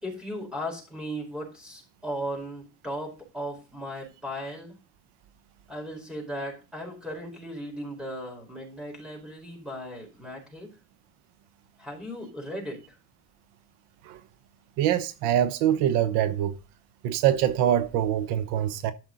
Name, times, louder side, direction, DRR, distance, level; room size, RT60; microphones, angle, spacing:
voice 1, 0.0-4.8 5.7-10.7 11.8-13.0, equal, ahead, 4.8 m, -37 dB
voice 2, 14.8-16.6 17.0-18.9, right 11 dB, 85° right, 1.0 m, -24 dB
12.0 x 6.2 x 4.0 m
cardioid pair, 155°, 40 cm